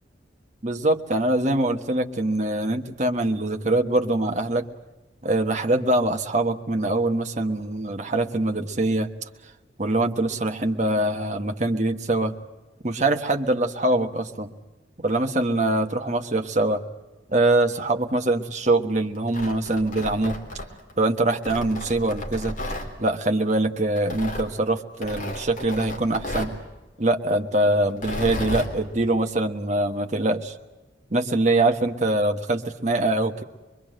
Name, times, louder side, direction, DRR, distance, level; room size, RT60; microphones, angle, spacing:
voice 1, 0.6-4.6 5.2-9.1 9.8-12.3 12.8-14.5 15.0-16.8 17.3-20.4 21.0-22.6 23.0-26.5 27.0-30.5 31.1-33.4, right 2 dB, 40° right, 5 dB, 1.4 m, -23 dB
Tearing, 19.1-20.9 21.4-22.9 24.0-24.5 25.0-26.6 27.9-28.7, left 1 dB, 45° left, 3.6 m, -33 dB
24.0 x 23.0 x 7.6 m, 1.1 s
head